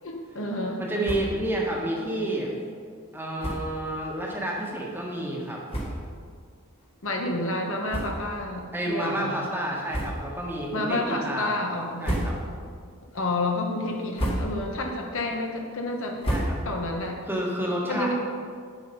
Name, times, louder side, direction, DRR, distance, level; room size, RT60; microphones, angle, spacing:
voice 1, 0.0-0.8 7.0-9.3 10.7-12.3 13.1-16.2 16.6-17.2 17.9-18.1, left 2 dB, 60° left, 1 dB, 1.4 m, -29 dB
voice 2, 0.8-2.5 3.1-5.6 8.7-11.5 12.0-12.4 16.3-16.6 17.3-18.1, right 1 dB, 10° right, -3 dB, 1.5 m, -30 dB
sound 1, 1.0-1.5 1.8-1.9 2.2-2.4 3.4-3.8 4.5-4.6 5.3-5.4 5.7-6.2 6.8-6.9 7.8-8.5 8.9-9.0 9.9-10.5 10.9-11.3 11.8-12.7 13.1-13.5 13.9-14.8 15.1-17.0, right 1 dB, 25° left, 1.7 m, -32 dB
9.8 x 7.8 x 5.4 m, 2.1 s
head